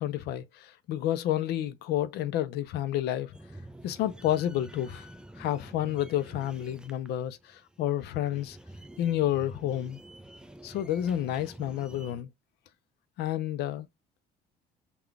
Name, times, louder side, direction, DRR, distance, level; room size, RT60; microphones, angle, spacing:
voice 1, 0.0-3.3 3.8-5.1 5.4-8.6 9.0-10.0 10.6-12.3 13.2-13.9, left 12 dB, 75° left, 0.5 m, -30 dB
sound 1, 3.3-12.2, right 1 dB, 5° right, 0.4 m, -48 dB
3.8 x 2.3 x 3.4 m
cardioid pair, 110°, 17 cm